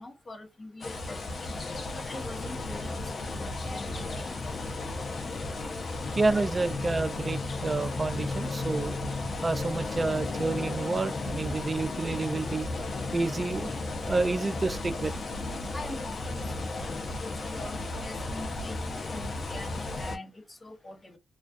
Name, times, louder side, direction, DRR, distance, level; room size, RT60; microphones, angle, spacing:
voice 1, 0.0-1.5 1.9-4.4 15.7-16.9 17.2-21.2, left 2 dB, 30° left, 0.9 m, -43 dB
sound 1, 0.8-20.2, left 2 dB, 55° left, 0.6 m, -34 dB
voice 2, 6.2-9.0 9.4-12.7 13.1-13.7 14.0-15.1, right 3 dB, 35° right, 0.3 m, -29 dB
2.3 x 2.3 x 2.4 m
cardioid pair, 60°, 0 cm